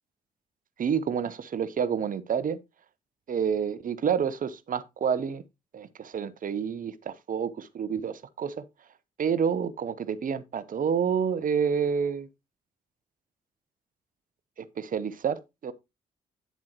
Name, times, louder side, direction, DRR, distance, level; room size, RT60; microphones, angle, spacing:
voice 1, 0.8-2.6 3.3-5.4 5.7-8.6 9.2-12.3 14.6-15.7, right 7 dB, 50° right, 0.9 m, -29 dB
9.4 x 7.3 x 2.9 m
hypercardioid pair, 40°, 18 cm